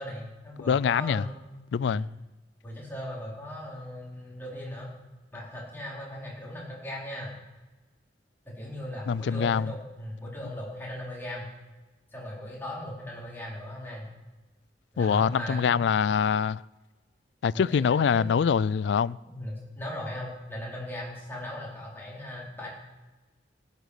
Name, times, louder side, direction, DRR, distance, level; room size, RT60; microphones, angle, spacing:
voice 1, 0.0-1.4 1.8-2.1 2.6-4.9 5.3-7.3 8.4-11.5 12.1-14.1 14.9-15.8 17.5-18.3 19.2-22.7, left 1 dB, 10° left, 4.5 m, -38 dB
voice 2, 0.7-1.3 1.7-2.1 9.1-9.7 15.0-16.6 17.4-19.2, left 6 dB, 70° left, 0.3 m, -24 dB
16.5 x 8.3 x 6.5 m
head